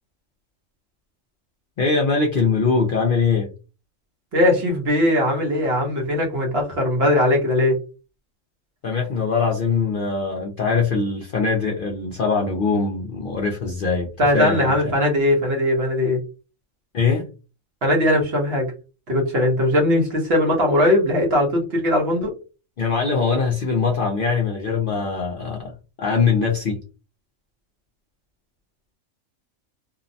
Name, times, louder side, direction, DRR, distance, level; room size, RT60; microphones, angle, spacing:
voice 1, 1.8-3.5 8.8-14.9 16.9-17.2 22.8-25.7 26.0-26.8, left 5 dB, 55° left, 0 dB, 0.6 m, -22 dB
voice 2, 4.3-7.8 14.2-16.2 17.8-18.7 19.1-22.3, left 1 dB, 55° right, 0 dB, 1.1 m, -19 dB
2.7 x 2.0 x 2.6 m, 0.32 s
omnidirectional pair, 1.3 m